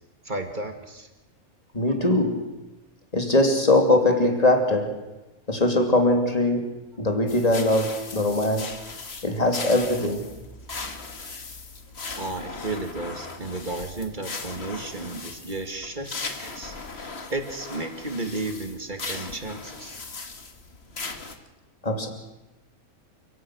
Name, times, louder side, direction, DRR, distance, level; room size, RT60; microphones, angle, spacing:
voice 1, 0.2-1.1 12.2-20.0, right 2 dB, 30° right, 6 dB, 2.5 m, -33 dB
voice 2, 1.7-2.5 3.1-5.1 5.5-8.7 9.2-10.3 21.8-22.1, left 1 dB, 25° left, 4 dB, 3.1 m, -21 dB
sound 1, 7.3-21.4, left 3 dB, 45° left, 2.0 m, -38 dB
29.5 x 17.0 x 6.4 m, 0.99 s
omnidirectional pair, 1.5 m